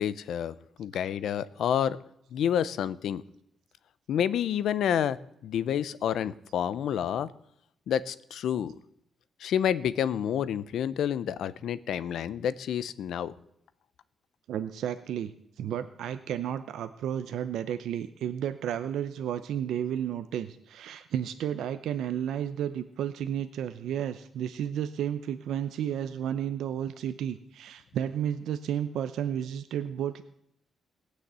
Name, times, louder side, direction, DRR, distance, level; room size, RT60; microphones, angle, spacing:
voice 1, 0.0-2.0 2.3-3.2 4.1-5.2 5.4-7.3 7.9-8.7 9.4-13.3, left 9 dB, 70° left, 16 dB, 0.7 m, -29 dB
voice 2, 14.5-15.3 15.6-30.2, right 9 dB, 85° right, 10 dB, 0.7 m, -32 dB
19.5 x 6.5 x 8.1 m, 0.75 s
wide cardioid pair, 170°, 0 cm